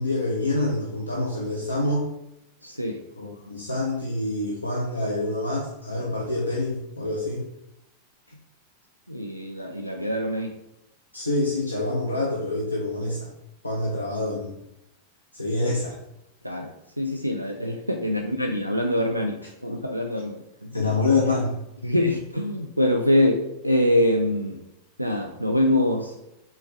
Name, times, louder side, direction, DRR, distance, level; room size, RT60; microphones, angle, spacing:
voice 1, 0.0-2.1 3.2-7.4 11.1-13.3 13.6-14.5 15.3-16.0 20.7-21.6, left 2 dB, 80° left, -3 dB, 0.6 m, -26 dB
voice 2, 2.6-3.0 9.1-10.6 16.4-20.8 21.8-24.6 25.0-26.1, left 1 dB, 90° right, 2 dB, 0.3 m, -24 dB
4.4 x 3.4 x 3.1 m, 0.87 s
figure-of-eight pair, 90°, 0 cm